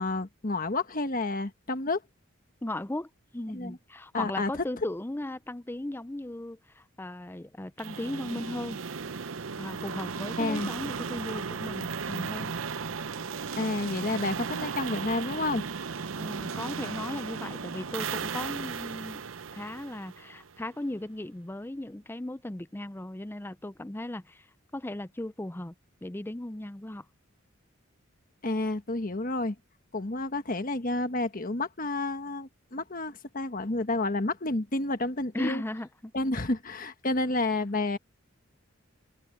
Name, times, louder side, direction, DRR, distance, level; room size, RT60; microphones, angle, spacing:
voice 1, 0.0-2.0 3.5-3.8 4.1-4.5 10.4-10.7 13.5-15.6 28.4-29.5 29.9-35.6 36.1-38.0, left 2 dB, 45° left, 1.4 m, -30 dB
voice 2, 2.6-8.8 9.6-12.5 16.1-19.2 19.5-24.5 24.7-25.7 26.0-27.1 35.3-36.1, left 1 dB, 10° left, 0.5 m, -37 dB
sound 1, 7.8-20.7, right 5 dB, 80° right, 0.8 m, -36 dB
head